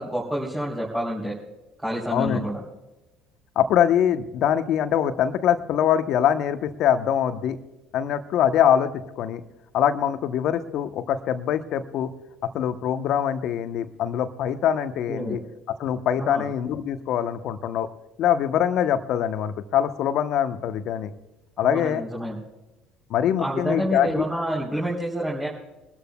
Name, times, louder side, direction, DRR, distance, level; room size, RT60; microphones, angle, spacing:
voice 1, 0.0-1.4 1.8-2.6 15.1-15.4 16.2-16.4 21.6-22.4 23.4-25.5, equal, 10° right, -5 dB, 3.7 m, -28 dB
voice 2, 2.1-2.5 3.6-7.6 7.9-9.4 9.7-12.1 12.5-15.4 15.8-17.9 18.2-21.1 21.6-22.0 23.1-24.2, left 9 dB, 60° left, 10 dB, 1.0 m, -23 dB
24.0 x 13.0 x 2.3 m, 1.0 s
hypercardioid pair, 65°, 0 cm